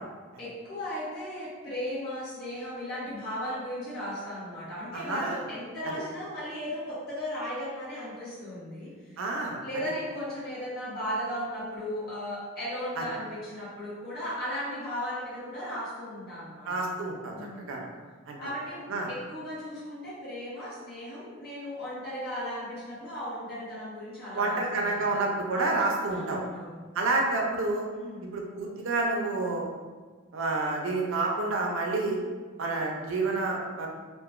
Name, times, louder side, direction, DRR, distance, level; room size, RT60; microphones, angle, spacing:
voice 1, 0.4-9.2 9.6-16.9 17.3-17.7 18.4-25.3 26.1-26.9 27.9-28.2 32.0-32.2, equal, 50° left, -9 dB, 1.2 m, -36 dB
voice 2, 4.9-5.4 9.2-9.6 16.7-17.3 17.7-17.9 18.3-18.4 18.9-19.1 24.3-26.4 26.9-27.8 28.3-29.7 30.3-32.2 32.6-33.9, right 3 dB, 65° right, 0 dB, 0.5 m, -29 dB
2.8 x 2.4 x 2.4 m, 1.4 s
head